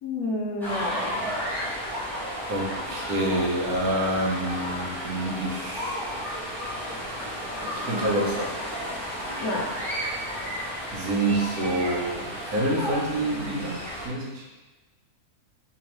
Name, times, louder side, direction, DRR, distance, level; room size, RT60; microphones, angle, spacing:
voice 1, 0.0-1.3 9.4-9.7, left 2 dB, 80° left, -1 dB, 1.2 m, -29 dB
sound 1, 0.6-14.1, equal, ahead, 0.8 m, -33 dB
voice 2, 2.5-6.2 7.7-8.5 10.9-14.4, right 1 dB, 70° right, -3 dB, 1.3 m, -27 dB
3.5 x 3.0 x 2.9 m, 1.2 s
omnidirectional pair, 1.6 m